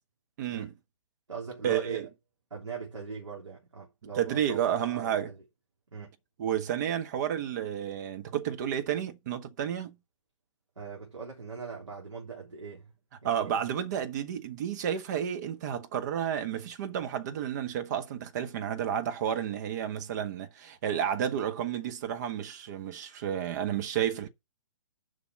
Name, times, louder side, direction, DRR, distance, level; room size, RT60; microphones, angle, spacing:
voice 1, 0.4-0.7 1.6-2.1 4.1-5.3 6.4-10.0 13.2-24.3, right 9 dB, 35° right, 1.0 m, -31 dB
voice 2, 1.3-2.1 2.5-5.4 5.9-6.2 10.7-12.9 13.2-13.6 24.0-24.1, right 6 dB, 70° right, 3.3 m, -41 dB
7.1 x 5.3 x 6.5 m
figure-of-eight pair, 130°, 16 cm